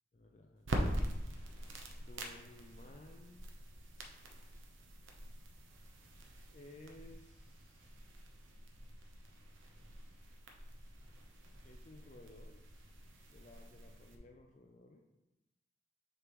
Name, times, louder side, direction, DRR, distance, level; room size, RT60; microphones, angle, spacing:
voice 1, 0.1-0.8 2.1-3.5 4.0-4.6 6.5-7.9 11.6-12.6 13.3-15.0, left 2 dB, 40° left, 2 dB, 0.4 m, -57 dB
sound 1, 0.6-14.2, right 1 dB, 85° right, 0.8 m, -44 dB
6.6 x 5.1 x 3.0 m, 0.97 s
head